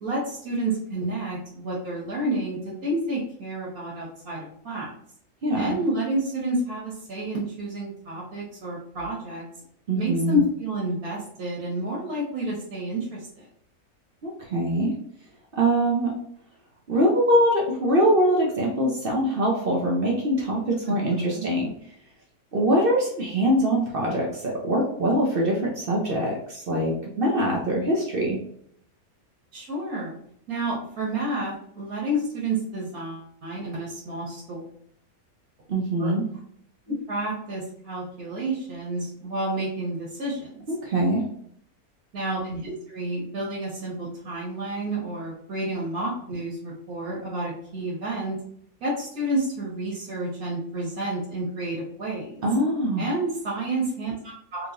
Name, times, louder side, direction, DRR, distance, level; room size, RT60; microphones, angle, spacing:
voice 1, 0.0-4.9 5.5-9.4 9.9-13.5 20.9-21.5 29.5-30.1 30.5-34.7 36.0-36.4 36.9-40.6 42.1-48.4 48.8-52.4 53.0-54.7, right 1 dB, 85° right, -5 dB, 1.6 m, -30 dB
voice 2, 5.4-5.8 9.9-10.4 14.2-14.9 15.6-16.1 16.9-21.7 22.5-28.4 35.7-36.3 40.7-41.2 52.4-53.0, right 1 dB, 50° right, -2 dB, 0.7 m, -23 dB
3.4 x 3.1 x 2.5 m, 0.66 s
omnidirectional pair, 1.5 m